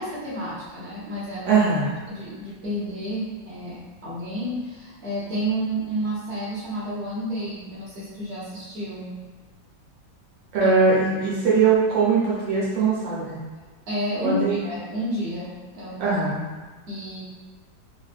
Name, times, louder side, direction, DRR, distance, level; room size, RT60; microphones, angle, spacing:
voice 1, 0.0-9.1 10.6-10.7 13.9-16.2 16.9-17.2, equal, 40° right, -9 dB, 1.1 m, -31 dB
voice 2, 1.4-1.9 10.5-13.4 14.2-14.6 16.0-16.4, right 4 dB, 70° right, -7 dB, 1.5 m, -21 dB
3.5 x 2.5 x 2.4 m, 1.4 s
omnidirectional pair, 2.1 m